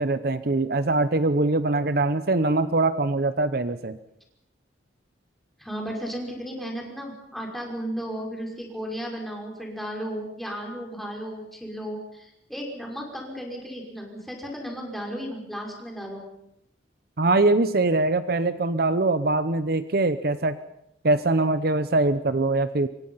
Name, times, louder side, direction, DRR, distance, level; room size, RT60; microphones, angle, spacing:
voice 1, 0.0-4.0 17.2-20.6 21.0-22.9, right 2 dB, 55° right, 12 dB, 0.8 m, -23 dB
voice 2, 5.6-16.2, equal, ahead, -1 dB, 5.6 m, -34 dB
27.5 x 23.5 x 5.7 m, 0.81 s
head